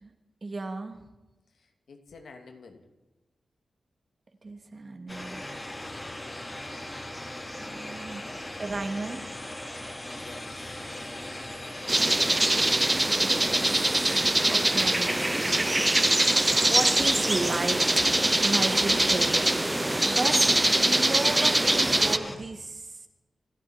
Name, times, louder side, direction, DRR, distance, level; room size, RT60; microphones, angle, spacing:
voice 1, 0.4-1.1 4.4-5.4 7.6-8.3 8.6-9.3 13.2-14.2 14.5-15.8 16.4-18.1 18.4-19.5 20.1-20.4 20.9-23.0, right 3 dB, 45° right, 5 dB, 2.6 m, -34 dB
voice 2, 1.6-2.8 10.0-12.4, left 4 dB, 80° left, 4 dB, 2.5 m, -52 dB
sound 1, 5.1-22.4, left 1 dB, 20° left, 4.0 m, -38 dB
sound 2, 11.9-22.2, right 1 dB, 20° right, 0.6 m, -23 dB
27.5 x 12.0 x 4.5 m, 1.1 s
cardioid pair, 55°, 0 cm